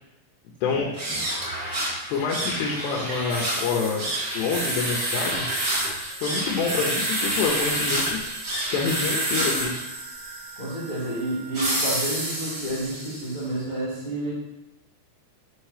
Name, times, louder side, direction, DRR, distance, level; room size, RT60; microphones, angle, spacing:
sound 1, 0.9-13.4, right 1 dB, 50° right, 1.1 m, -28 dB
voice 1, 2.1-4.1 4.3-5.5 6.2-8.2 8.7-9.7, left 5 dB, 80° left, -1 dB, 2.8 m, -27 dB
voice 2, 10.5-14.3, right 1 dB, 40° left, -9 dB, 1.3 m, -30 dB
6.6 x 3.9 x 4.9 m, 0.94 s
omnidirectional pair, 5.2 m